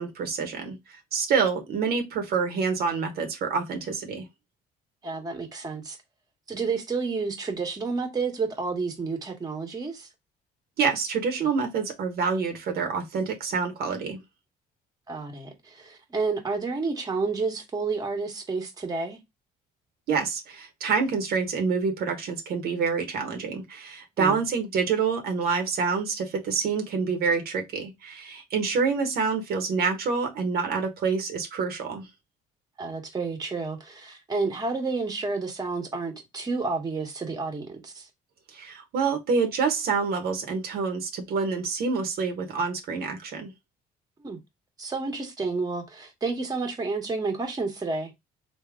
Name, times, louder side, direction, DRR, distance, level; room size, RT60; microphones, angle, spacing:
voice 1, 0.0-4.3 10.8-14.2 20.1-32.1 38.5-43.5, right 5 dB, 65° right, 1.0 m, -27 dB
voice 2, 5.0-6.0 6.5-10.1 15.1-19.2 24.2-24.4 32.8-38.1 44.2-44.4 44.8-48.1, right 4 dB, 20° right, 1.1 m, -30 dB
3.5 x 2.8 x 3.5 m
cardioid pair, 110°, 17 cm